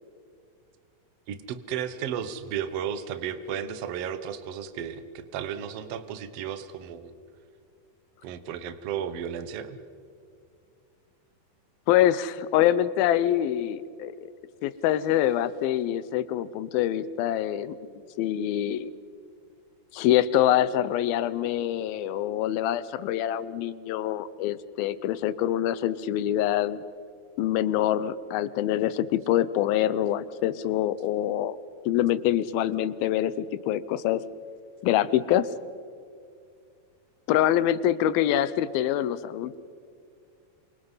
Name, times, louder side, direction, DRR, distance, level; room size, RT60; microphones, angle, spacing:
voice 1, 1.3-7.1 8.2-9.8, right 8 dB, 60° right, 11 dB, 1.8 m, -34 dB
voice 2, 11.9-14.3 14.6-17.9 18.2-18.9 19.9-26.8 27.4-31.6 31.9-34.2 34.8-35.5 37.3-39.6, left 12 dB, 90° left, 15 dB, 2.7 m, -25 dB
28.5 x 26.0 x 5.6 m, 2.3 s
omnidirectional pair, 4.1 m